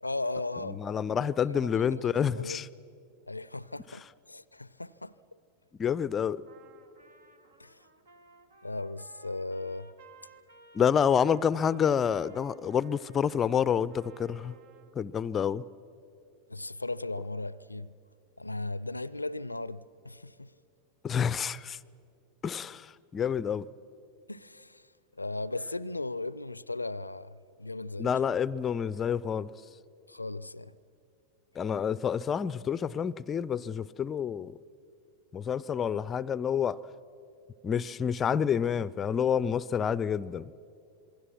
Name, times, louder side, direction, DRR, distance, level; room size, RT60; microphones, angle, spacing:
voice 1, 0.0-0.8 1.1-2.6 3.3-5.2 7.6-7.8 8.6-9.9 16.5-18.0 18.4-20.5 24.3-24.9 25.2-28.1 30.1-30.8, left 2 dB, 85° left, 0.5 m, -37 dB
voice 2, 0.6-2.7 5.8-6.4 10.7-14.6 15.0-15.6 21.0-21.8 22.4-23.7 28.0-29.5 31.6-34.6 35.3-36.8 37.6-40.5, left 7 dB, 25° left, 0.5 m, -28 dB
Trumpet, 6.5-15.0, right 3 dB, 65° right, 1.4 m, -58 dB
27.0 x 21.5 x 6.0 m
figure-of-eight pair, 90°, 0 cm